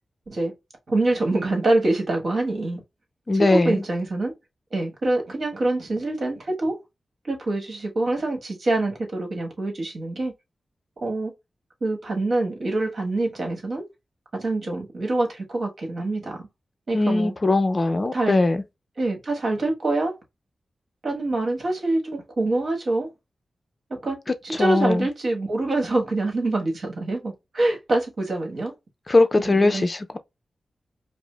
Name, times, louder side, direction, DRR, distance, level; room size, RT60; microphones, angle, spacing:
voice 1, 0.9-2.8 3.3-4.3 4.7-6.8 7.2-10.3 11.0-11.3 11.8-13.8 14.3-16.5 16.9-17.3 18.1-18.3 19.0-20.1 21.0-23.1 23.9-24.2 24.4-28.7 29.4-29.8, right 2 dB, 55° right, 1.4 m, -25 dB
voice 2, 3.3-3.7 16.9-18.6 24.6-25.1 29.1-30.2, left 2 dB, 30° left, 0.5 m, -20 dB
4.8 x 2.0 x 2.2 m
wide cardioid pair, 120°, 0 cm